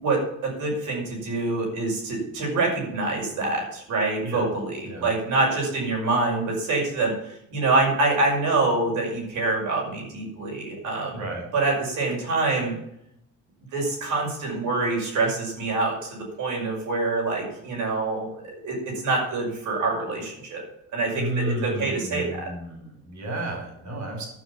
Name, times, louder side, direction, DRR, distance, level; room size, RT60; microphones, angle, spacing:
voice 1, 0.0-11.2 11.5-12.7 13.7-20.6 20.9-22.5, right 3 dB, 85° right, -1 dB, 5.8 m, -26 dB
voice 2, 11.1-11.5 21.1-24.3, right 1 dB, 70° right, 1 dB, 5.0 m, -32 dB
12.5 x 6.4 x 8.6 m, 0.77 s
cardioid pair, 90°, 30 cm